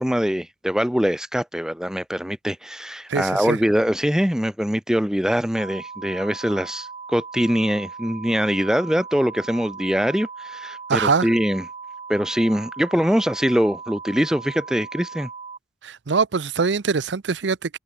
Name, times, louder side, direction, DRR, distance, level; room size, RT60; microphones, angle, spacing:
voice 1, 0.0-11.6 12.1-15.3, equal, 5° right, 0.7 m, -23 dB
voice 2, 3.1-3.6 10.9-11.3 15.8-17.8, right 5 dB, 75° right, 0.7 m, -23 dB
sound 1, 5.6-15.6, right 5 dB, 35° right, 2.9 m, -38 dB
head